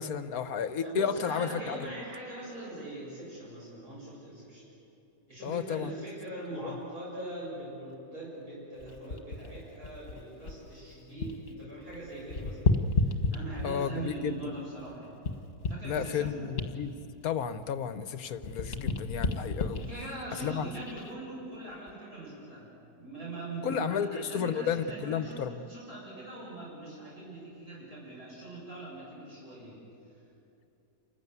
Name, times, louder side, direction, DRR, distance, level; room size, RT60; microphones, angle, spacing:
voice 1, 0.0-1.9 5.4-5.9 6.6-6.7 13.6-14.4 15.8-16.9 17.2-19.9 20.4-20.7 23.6-25.6, left 7 dB, 65° left, 11 dB, 1.3 m, -32 dB
voice 2, 0.8-4.6 5.3-15.2 15.7-16.4 19.9-22.7 22.9-29.8, right 1 dB, 65° right, -7 dB, 8.0 m, -42 dB
sound 1, 8.8-11.5 11.8-14.0 14.5-18.1 18.3-21.1 21.7-21.9, left 3 dB, 40° left, 1.6 m, -33 dB
28.5 x 15.5 x 9.4 m, 2.8 s
omnidirectional pair, 1.8 m